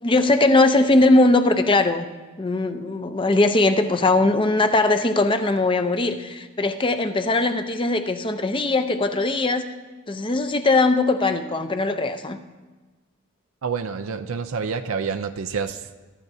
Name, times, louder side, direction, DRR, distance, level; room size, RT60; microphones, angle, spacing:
voice 1, 0.0-2.1 2.4-9.7 10.1-12.4, left 2 dB, 25° left, 8 dB, 0.6 m, -20 dB
voice 2, 13.6-16.0, right 5 dB, 85° right, 9 dB, 0.5 m, -28 dB
23.0 x 11.5 x 2.7 m, 1.3 s
head